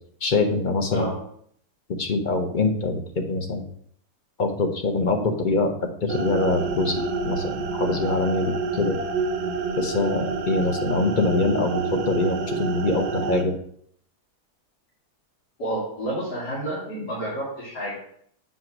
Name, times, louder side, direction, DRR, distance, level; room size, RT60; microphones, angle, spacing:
voice 1, 0.2-1.1 2.0-3.6 4.4-7.0 7.2-9.0 9.8-13.5, left 3 dB, 45° left, 4 dB, 0.7 m, -24 dB
sound 1, 6.1-13.4, right 4 dB, 80° right, 1.3 m, -28 dB
voice 2, 15.6-18.0, right 1 dB, 80° left, -8 dB, 2.7 m, -30 dB
7.6 x 3.0 x 5.9 m, 0.65 s
omnidirectional pair, 1.8 m